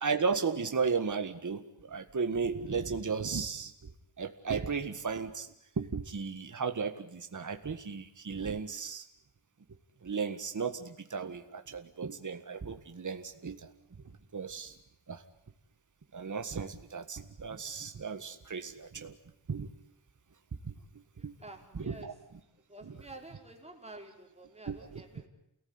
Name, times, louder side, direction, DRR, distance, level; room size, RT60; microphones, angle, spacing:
voice 1, 0.0-3.9 4.2-9.1 10.0-13.7 14.3-14.8 15.1-15.2 16.1-19.2 19.5-19.7 20.6-20.7 21.2-21.4 21.7-22.1 22.8-23.0 24.7-25.0, right 5 dB, 40° right, 7 dB, 1.8 m, -35 dB
voice 2, 21.2-22.2 22.7-25.3, right 2 dB, 15° right, 2 dB, 4.4 m, -50 dB
29.0 x 18.5 x 9.7 m, 0.79 s
wide cardioid pair, 145°, 46 cm